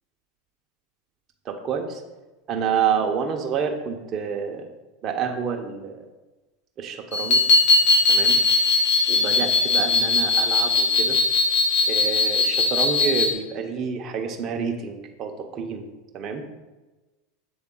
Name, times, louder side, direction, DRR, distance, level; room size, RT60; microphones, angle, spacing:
voice 1, 1.4-2.0 2.5-4.7 5.0-6.0 6.8-7.5 8.1-8.4 9.1-11.2 11.9-15.9 16.1-16.4, right 6 dB, 40° right, 2 dB, 0.7 m, -28 dB
sound 1, 7.1-13.3, left 3 dB, 65° left, 1.2 m, -20 dB
7.1 x 3.6 x 3.7 m, 1.2 s
hypercardioid pair, 100°, 0 cm